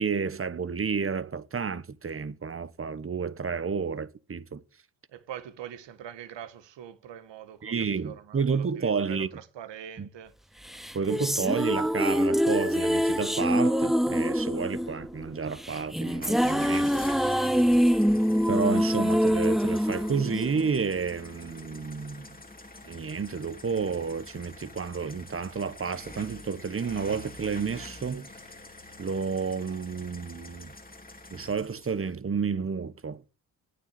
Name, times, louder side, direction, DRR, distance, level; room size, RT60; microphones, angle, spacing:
voice 1, 0.0-4.6 7.6-9.3 10.0-10.1 10.9-17.3 18.5-22.3 22.8-28.3 29.0-30.7 31.3-33.2, right 5 dB, 30° right, 1.0 m, -31 dB
voice 2, 5.1-10.3, right 10 dB, 80° right, 1.5 m, -43 dB
sound 1, 10.7-21.1, equal, ahead, 0.5 m, -25 dB
sound 2, 16.2-32.1, left 2 dB, 20° left, 2.2 m, -47 dB
8.9 x 7.6 x 8.1 m
cardioid pair, 65°, 43 cm